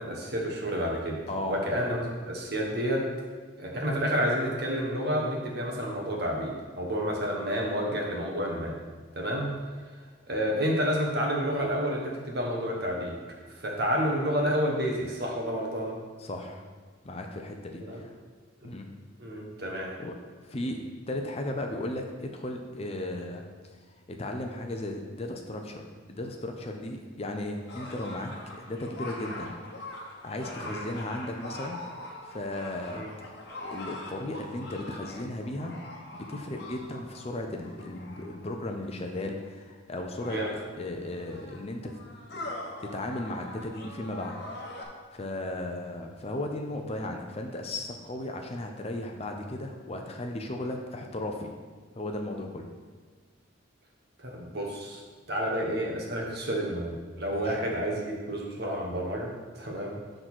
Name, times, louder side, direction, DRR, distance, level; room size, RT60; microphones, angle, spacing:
voice 1, 0.0-3.1 3.6-8.7 9.1-9.5 10.3-13.2 13.6-15.9 17.8-18.0 18.6-18.7 19.2-19.9 30.6-30.8 32.9-33.1 40.2-40.5 54.2-55.0 55.3-60.0, equal, 50° right, -1 dB, 1.3 m, -30 dB
voice 2, 1.3-1.6 16.2-16.6 17.0-18.1 18.6-18.9 20.0-20.1 20.4-23.4 24.1-29.5 30.1-31.8 32.2-33.1 33.6-35.7 36.1-40.4 40.8-41.9 42.3-42.5 42.8-44.4 45.1-51.5 52.0-52.7 57.3-57.6, left 1 dB, 30° left, 3 dB, 0.5 m, -35 dB
sound 1, 27.7-38.5 39.4-39.5 40.0-44.8, left 2 dB, 55° left, 1.1 m, -43 dB
6.4 x 3.9 x 6.2 m, 1.5 s
head